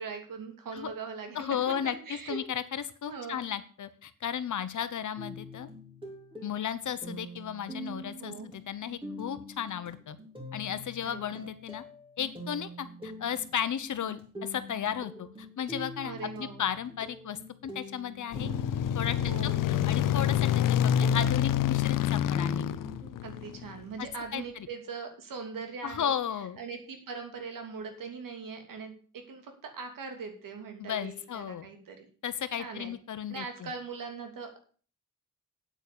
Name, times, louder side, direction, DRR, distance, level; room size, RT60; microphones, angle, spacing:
voice 1, 0.0-2.4 3.1-3.4 8.2-8.5 11.0-11.3 16.0-16.7 19.2-19.7 23.2-26.1 26.6-32.1 32.6-32.9 33.3-34.6, right 5 dB, 90° right, 4 dB, 2.9 m, -41 dB
voice 2, 1.3-2.0 2.3-5.7 6.4-10.2 10.5-11.8 12.2-18.5 18.9-22.7 24.0-24.1 24.3-24.7 25.8-26.6 30.8-31.7 32.2-33.7, left 9 dB, 65° left, 12 dB, 1.1 m, -34 dB
sound 1, 5.2-23.1, equal, 15° right, 3.6 m, -45 dB
sound 2, 18.3-23.8, left 10 dB, 80° left, 0.5 m, -27 dB
8.9 x 8.5 x 6.8 m, 0.42 s
wide cardioid pair, 125°, 32 cm